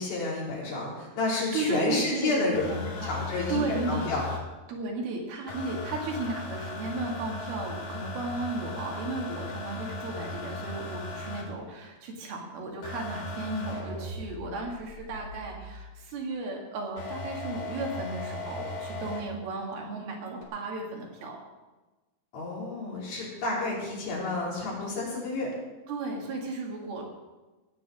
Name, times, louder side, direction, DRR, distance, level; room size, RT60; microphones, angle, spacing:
voice 1, 0.0-2.6 3.0-4.2 22.3-25.5, left 2 dB, 65° left, -4 dB, 5.6 m, -30 dB
voice 2, 1.5-3.2 3.5-4.1 4.7-21.4 25.9-27.0, right 2 dB, 70° right, 0 dB, 4.0 m, -34 dB
sound 1, 2.5-4.4 5.5-11.4 12.8-15.8 17.0-19.2 20.4-20.5, left 3 dB, 45° left, 2.5 m, -37 dB
17.5 x 6.3 x 7.4 m, 1.2 s
omnidirectional pair, 4.5 m